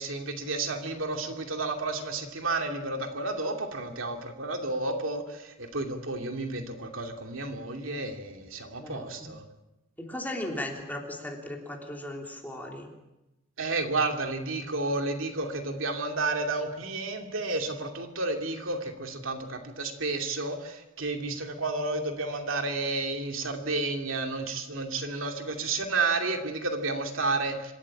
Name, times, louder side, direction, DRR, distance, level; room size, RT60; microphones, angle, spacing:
voice 1, 0.0-9.4 13.6-27.7, right 3 dB, 75° right, 4 dB, 2.6 m, -31 dB
voice 2, 8.8-9.3 10.0-12.9, left 1 dB, 10° left, 1 dB, 3.3 m, -37 dB
26.0 x 13.5 x 8.9 m, 0.97 s
head